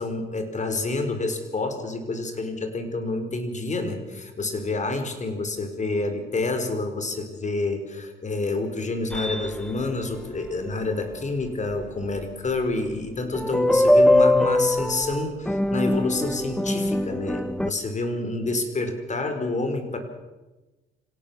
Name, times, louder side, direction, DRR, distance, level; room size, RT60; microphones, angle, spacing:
voice 1, 0.0-20.0, left 2 dB, 35° left, 7 dB, 5.0 m, -28 dB
sound 1, 9.1-9.8 11.8-11.9 13.3-17.7, left 1 dB, 5° left, 1.0 m, -22 dB
26.0 x 17.5 x 7.3 m, 1.1 s
cardioid pair, 90°, 20 cm